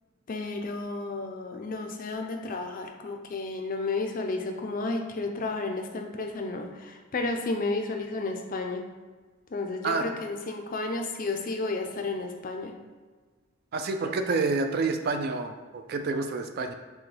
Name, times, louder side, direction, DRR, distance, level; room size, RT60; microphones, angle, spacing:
voice 1, 0.3-8.8 9.5-12.8, left 3 dB, 40° left, 4 dB, 0.4 m, -32 dB
voice 2, 13.7-16.7, right 3 dB, 45° right, 6 dB, 0.3 m, -28 dB
5.9 x 2.2 x 3.3 m, 1.4 s
head